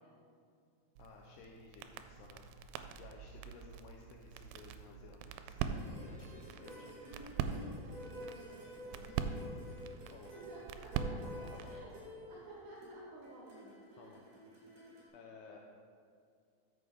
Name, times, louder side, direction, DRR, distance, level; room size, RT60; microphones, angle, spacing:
voice 1, 1.0-2.4 3.0-7.3 9.2-9.8 10.1-10.3 11.1-11.7 14.0-14.2 15.1-15.6, left 5 dB, 80° left, -1 dB, 2.6 m, -56 dB
sound 1, 1.0-11.8, right 7 dB, 90° right, 2.8 m, -43 dB
sound 2, 5.6-15.1, left 1 dB, 55° right, 4.1 m, -51 dB
voice 2, 7.3-9.2 10.3-11.9 12.3-14.2, right 2 dB, 70° right, -4 dB, 2.7 m, -54 dB
13.0 x 7.0 x 3.5 m, 2.3 s
omnidirectional pair, 4.9 m